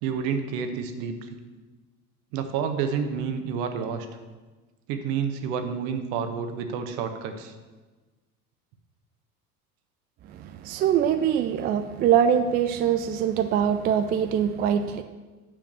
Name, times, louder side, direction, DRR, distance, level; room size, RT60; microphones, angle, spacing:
voice 1, 0.0-1.3 2.3-4.1 4.9-7.5, right 6 dB, 50° right, 7 dB, 1.2 m, -29 dB
voice 2, 10.3-15.0, right 8 dB, 25° right, 8 dB, 0.3 m, -23 dB
9.0 x 5.0 x 6.9 m, 1.3 s
figure-of-eight pair, 70°, 45 cm